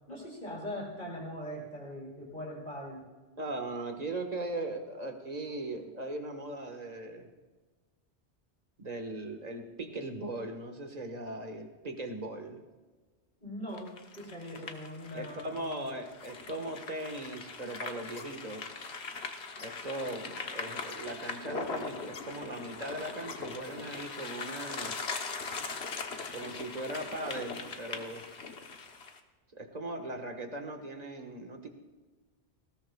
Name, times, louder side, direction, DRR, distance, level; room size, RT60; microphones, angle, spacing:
voice 1, 0.1-3.1 13.4-15.9, equal, 50° left, -5 dB, 4.2 m, -41 dB
voice 2, 3.4-7.3 8.8-12.6 15.1-18.7 19.6-25.3 26.3-28.5 29.5-31.7, right 2 dB, 40° right, 5 dB, 1.6 m, -39 dB
sound 1, 13.7-29.2, left 4 dB, 75° left, 1.4 m, -41 dB
19.5 x 17.0 x 2.4 m, 1.3 s
omnidirectional pair, 1.1 m